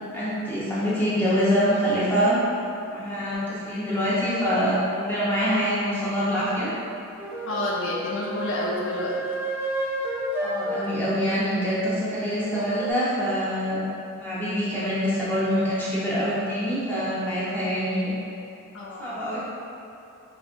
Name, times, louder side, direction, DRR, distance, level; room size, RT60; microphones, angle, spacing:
voice 1, 0.0-2.4 2.9-6.7 10.4-13.9 14.1-18.2 19.0-19.4, equal, 10° left, -10 dB, 0.8 m, -25 dB
sound 1, 7.2-11.0 12.4-12.9, right 1 dB, 10° right, 0.4 m, -31 dB
voice 2, 7.5-9.2 18.7-19.2, left 1 dB, 60° left, -3 dB, 0.4 m, -29 dB
5.1 x 2.4 x 2.5 m, 2.7 s
head